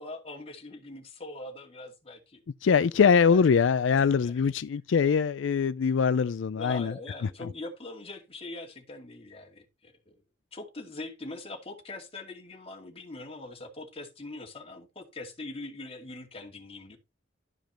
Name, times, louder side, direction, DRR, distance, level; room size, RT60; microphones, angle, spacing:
voice 1, 0.0-2.4 2.7-2.8 4.0-4.4 6.6-10.1 10.5-17.0, left 2 dB, 30° left, 2.3 m, -42 dB
voice 2, 2.6-6.9, left 6 dB, 80° left, 0.4 m, -23 dB
12.5 x 5.1 x 4.3 m
head